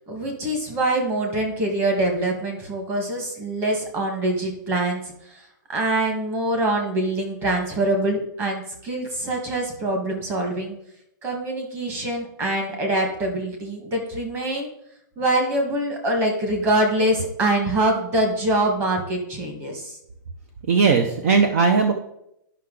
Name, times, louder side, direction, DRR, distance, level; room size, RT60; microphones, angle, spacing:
voice 1, 0.1-10.7 11.2-14.7 15.2-20.0, right 1 dB, 20° right, 2 dB, 1.5 m, -24 dB
voice 2, 20.7-21.9, right 5 dB, 45° right, 6 dB, 0.7 m, -18 dB
11.0 x 5.7 x 3.8 m, 0.79 s
hypercardioid pair, 170°, 11 cm